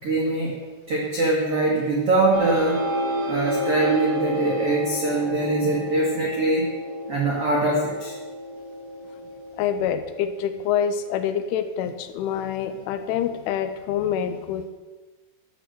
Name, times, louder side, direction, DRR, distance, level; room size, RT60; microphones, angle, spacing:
voice 1, 0.0-0.6 0.9-2.8 3.3-6.7 7.1-8.1, right 2 dB, 75° right, -2 dB, 1.3 m, -23 dB
sound 1, 2.3-11.6, equal, 55° right, 4.5 m, -31 dB
voice 2, 9.6-14.7, left 8 dB, 80° left, 10 dB, 3.1 m, -26 dB
12.5 x 6.6 x 8.0 m, 1.3 s
omnidirectional pair, 5.7 m